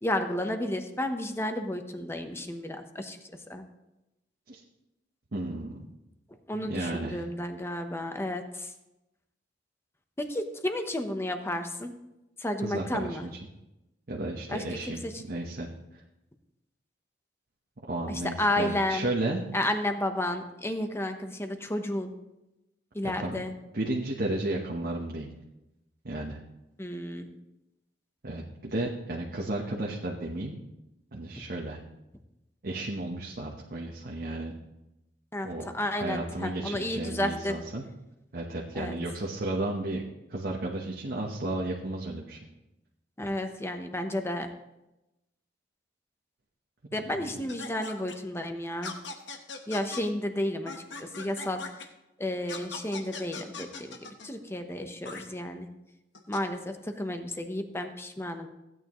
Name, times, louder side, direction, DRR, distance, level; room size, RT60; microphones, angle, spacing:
voice 1, 0.0-3.2 3.5-3.6 6.5-8.7 10.2-11.9 12.4-13.3 14.5-15.1 18.1-19.1 19.5-22.1 22.9-23.5 26.8-27.3 35.3-37.5 38.7-39.0 43.2-44.5 46.9-48.9 49.7-50.7 51.0-51.6 52.2-54.0 54.2-55.7 56.3-58.5, left 1 dB, 15° left, 6 dB, 0.9 m, -32 dB
voice 2, 5.3-5.8 6.5-7.2 12.6-13.4 14.1-15.0 15.3-15.7 17.9-19.4 23.0-23.4 23.7-25.3 26.0-26.4 28.2-30.6 31.1-31.8 32.6-34.5 35.4-37.8 38.3-40.0 40.3-42.4 47.0-47.1, right 2 dB, 55° right, -1 dB, 1.1 m, -33 dB
sound 1, 47.5-48.1 48.8-50.0 50.7-51.8 52.5-54.3 55.0-55.2 56.1-56.4, left 4 dB, 80° left, 1.1 m, -40 dB
15.5 x 9.1 x 3.1 m, 0.94 s
head